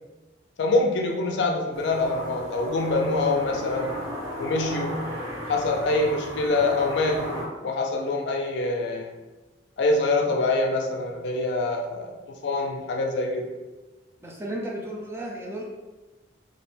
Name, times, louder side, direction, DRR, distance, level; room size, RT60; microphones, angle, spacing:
voice 1, 0.6-4.0 4.4-5.0 5.5-9.1 9.8-13.5, left 2 dB, 60° left, 1 dB, 0.4 m, -25 dB
sound 1, 1.7-7.4, equal, 85° right, 1.1 m, -35 dB
voice 2, 14.2-15.6, right 1 dB, 15° right, -2 dB, 0.3 m, -33 dB
2.3 x 2.1 x 3.1 m, 1.2 s
head